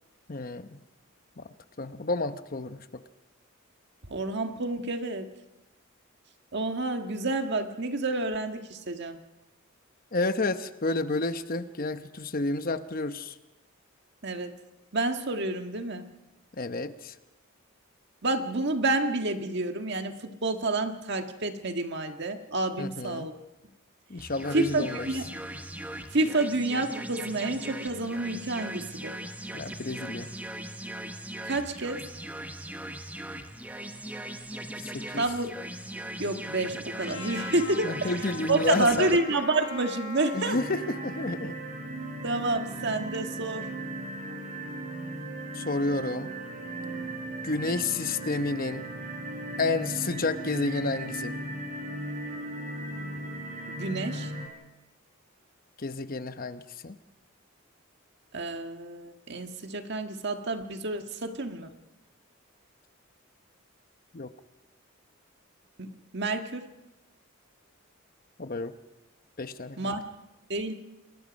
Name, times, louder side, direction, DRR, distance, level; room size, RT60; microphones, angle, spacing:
voice 1, 0.3-0.8 1.4-1.5 1.8-2.9 10.1-13.3 16.6-17.1 22.8-23.3 24.1-25.1 29.5-30.3 34.8-35.2 37.8-39.2 40.3-41.6 45.5-46.3 47.4-48.9 49.6-51.3 55.8-56.9 64.1-64.3 68.4-68.7 69.4-69.9, left 3 dB, 45° left, 10 dB, 0.9 m, -30 dB
voice 2, 4.1-5.3 6.5-9.2 14.2-14.6 14.9-16.1 18.2-23.3 24.5-25.2 26.1-29.1 31.4-32.0 35.2-35.5 36.2-38.1 38.5-40.6 42.2-43.7 53.7-54.3 58.3-61.7 65.8-66.7 69.8-70.1 70.5-70.7, right 2 dB, 55° right, 6 dB, 1.7 m, -29 dB
sound 1, 24.2-39.2, right 1 dB, 10° right, 1.1 m, -39 dB
Trumpet, 37.0-41.3, left 2 dB, 60° left, 7.8 m, -41 dB
sound 2, 40.5-54.5, right 1 dB, 40° right, 4.1 m, -37 dB
29.0 x 21.0 x 5.3 m, 1.0 s
head